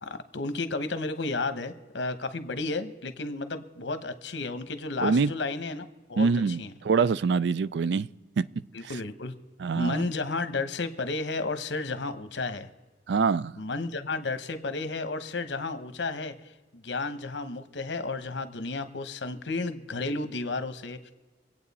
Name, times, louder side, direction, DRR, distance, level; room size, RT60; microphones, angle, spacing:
voice 1, 0.0-6.3 6.6-6.7 8.7-9.3 9.8-12.7 13.6-16.5 16.8-21.1, left 3 dB, 75° left, 1.0 m, -32 dB
voice 2, 5.0-5.3 6.2-8.1 8.4-8.5 8.8-8.9 9.6-10.1 13.1-13.6, right 5 dB, 65° right, 0.4 m, -25 dB
25.5 x 8.7 x 4.2 m
head